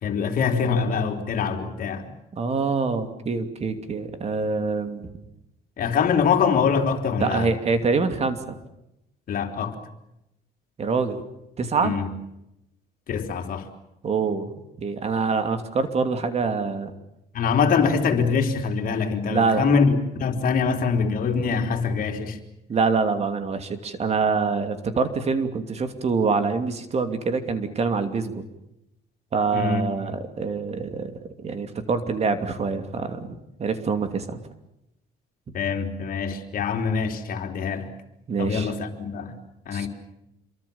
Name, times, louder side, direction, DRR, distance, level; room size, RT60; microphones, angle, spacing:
voice 1, 0.0-2.1 5.8-7.5 9.3-9.8 11.8-12.1 13.1-13.7 17.3-22.4 29.5-29.9 35.5-37.9 38.4-39.4 39.7-39.9, left 5 dB, 55° left, 4 dB, 3.8 m, -24 dB
voice 2, 2.3-5.1 7.2-8.6 10.8-11.2 11.6-11.9 14.0-14.5 14.8-16.9 19.2-19.6 22.7-28.5 29.3-34.4 38.3-38.7 39.7-39.9, right 4 dB, 40° right, 8 dB, 2.8 m, -25 dB
27.5 x 23.0 x 7.2 m, 0.85 s
cardioid pair, 110°, 17 cm